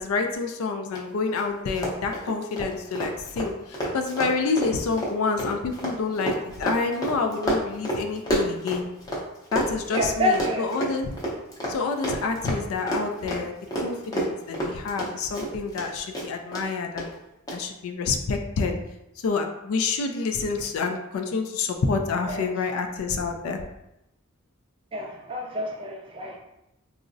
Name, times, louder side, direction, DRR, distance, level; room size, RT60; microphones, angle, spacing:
voice 1, 0.0-6.3 6.6-8.8 9.5-11.1 11.7-17.2 17.5-18.8 19.2-23.6, left 4 dB, 85° left, 5 dB, 0.4 m, -28 dB
Run, 0.9-1.0 1.3-1.4 1.7-9.2 9.5-15.9 16.1-16.6 17.0-17.1 17.5-17.6, right 1 dB, 20° left, 0.6 m, -29 dB
voice 2, 9.9-10.9 22.3-22.5 24.9-26.4, left 1 dB, 25° right, 1 dB, 0.3 m, -28 dB
3.6 x 2.0 x 2.5 m, 0.87 s
head